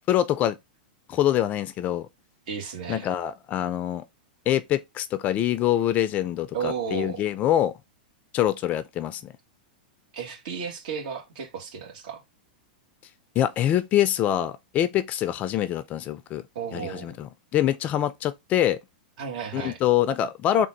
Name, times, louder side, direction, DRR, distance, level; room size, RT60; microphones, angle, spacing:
voice 1, 0.1-0.6 1.1-2.1 2.9-4.0 4.5-7.7 8.3-9.3 13.4-16.4 16.7-18.8 19.5-20.7, left 11 dB, 35° left, 0.4 m, -25 dB
voice 2, 2.5-3.1 6.5-7.2 10.1-12.2 16.5-17.2 19.2-19.8, right 7 dB, 60° right, 1.5 m, -33 dB
3.7 x 2.5 x 4.5 m
hypercardioid pair, 125°, 5 cm